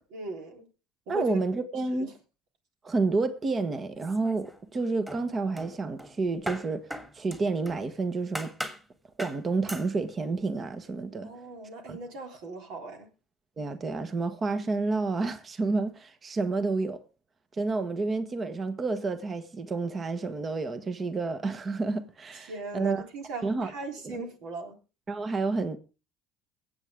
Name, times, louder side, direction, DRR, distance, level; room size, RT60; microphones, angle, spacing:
voice 1, 0.1-0.7 1.1-1.4 2.0-2.1 11.2-13.1 22.3-24.8, right 2 dB, 75° right, 3.5 m, -39 dB
voice 2, 1.1-2.1 2.8-6.9 7.1-8.5 9.2-11.3 11.9-12.0 13.6-17.0 17.5-23.0 23.4-23.7 24.0-24.2 25.1-25.8, right 3 dB, 35° right, 1.4 m, -30 dB
sound 1, 4.0-4.7 5.1-7.9 8.4-8.9 9.2-9.4 9.7-9.9, equal, 10° right, 2.7 m, -39 dB
22.5 x 8.2 x 3.6 m
supercardioid pair, 85°, 0 cm